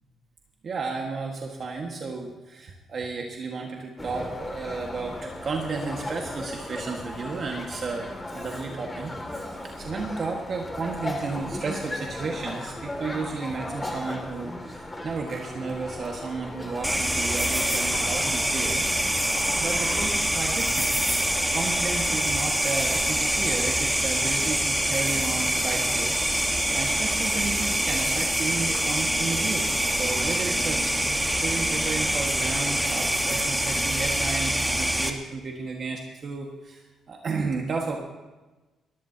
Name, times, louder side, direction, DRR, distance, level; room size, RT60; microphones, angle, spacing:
voice 1, 0.6-18.8 19.6-20.9 21.5-26.2 26.7-29.7 30.0-36.8 37.1-38.0, right 4 dB, 50° right, 1 dB, 1.7 m, -33 dB
sound 1, 4.0-20.1, left 1 dB, 15° left, 2.4 m, -37 dB
sound 2, 16.8-35.1, right 1 dB, 5° right, 1.5 m, -25 dB
20.5 x 15.0 x 2.9 m, 1.2 s
cardioid pair, 90°, 0 cm